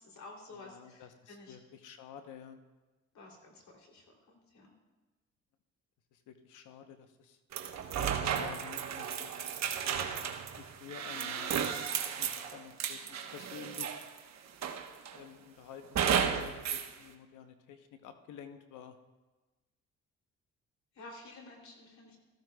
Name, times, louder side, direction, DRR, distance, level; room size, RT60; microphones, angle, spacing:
voice 1, 0.0-1.6 3.1-4.7 20.9-22.2, left 2 dB, 65° left, 1 dB, 2.9 m, -52 dB
voice 2, 0.5-2.6 6.1-7.4 8.0-10.0 10.5-11.6 12.2-14.0 15.1-15.8 16.1-19.0, left 8 dB, 85° left, 7 dB, 0.9 m, -50 dB
sound 1, 7.5-14.2 14.6-15.2 16.0-16.9, right 8 dB, 60° right, 1.0 m, -34 dB
15.5 x 14.0 x 2.3 m, 1.2 s
cardioid pair, 90°, 30 cm